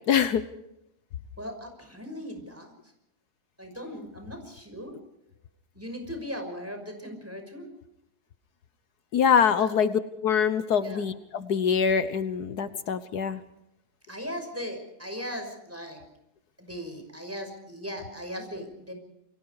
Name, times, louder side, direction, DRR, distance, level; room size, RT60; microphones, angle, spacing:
voice 1, 0.1-0.4 9.1-13.4, left 7 dB, 75° left, 12 dB, 1.6 m, -24 dB
voice 2, 1.4-2.7 3.6-4.9 5.7-7.7 9.5-9.7 10.7-11.0 14.1-16.0 16.6-18.9, equal, 10° right, 5 dB, 5.8 m, -38 dB
28.5 x 23.5 x 4.8 m, 0.83 s
omnidirectional pair, 1.7 m